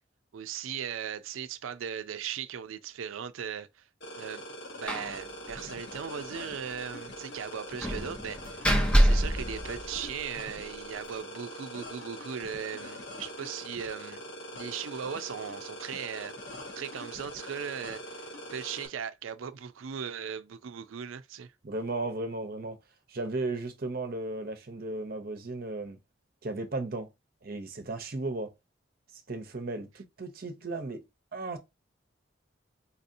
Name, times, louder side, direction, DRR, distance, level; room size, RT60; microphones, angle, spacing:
voice 1, 0.3-3.8 4.1-4.4 4.8-8.7 9.0-14.2 14.5-16.3 16.8-21.5, right 8 dB, 90° right, 0.4 m, -38 dB
sound 1, 4.0-18.9, equal, 55° left, 1.0 m, -43 dB
Slam, 4.9-5.2 5.5-5.6 5.9-6.0 7.8-10.4, equal, 5° left, 0.5 m, -26 dB
voice 2, 21.6-22.8 23.1-26.0 26.4-27.1 27.4-28.5 29.1-31.0 31.3-31.6, right 2 dB, 50° right, 0.7 m, -35 dB
4.1 x 2.7 x 2.6 m
head